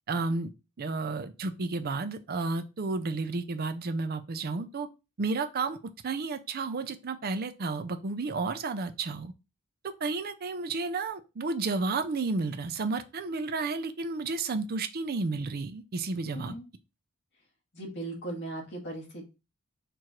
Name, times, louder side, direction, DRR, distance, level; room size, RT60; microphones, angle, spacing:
voice 1, 0.1-0.5 0.8-4.9 5.2-5.8 6.0-9.3 9.8-16.5, right 3 dB, 45° right, 0.5 m, -32 dB
voice 2, 16.3-16.7 17.7-19.2, right 2 dB, 55° left, 2.0 m, -38 dB
4.6 x 2.6 x 4.4 m
head